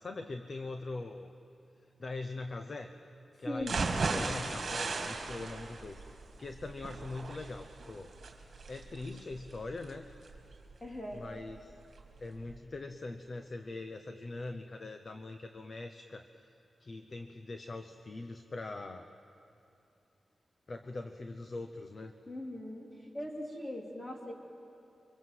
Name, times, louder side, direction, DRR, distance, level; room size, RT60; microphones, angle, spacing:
voice 1, 0.0-1.3 2.0-2.9 3.4-3.8 4.1-8.1 8.7-10.1 11.1-11.7 12.2-16.3 16.8-19.1 20.7-22.1, left 2 dB, 35° left, 7 dB, 0.9 m, -42 dB
voice 2, 3.4-3.9 10.8-11.2 22.3-24.3, left 1 dB, 20° left, 0 dB, 3.4 m, -40 dB
sound 1, 3.6-11.6 12.0-12.1 12.5-12.6, right 3 dB, 50° right, 2.5 m, -37 dB
29.0 x 24.5 x 7.9 m, 2.8 s
wide cardioid pair, 170°, 0 cm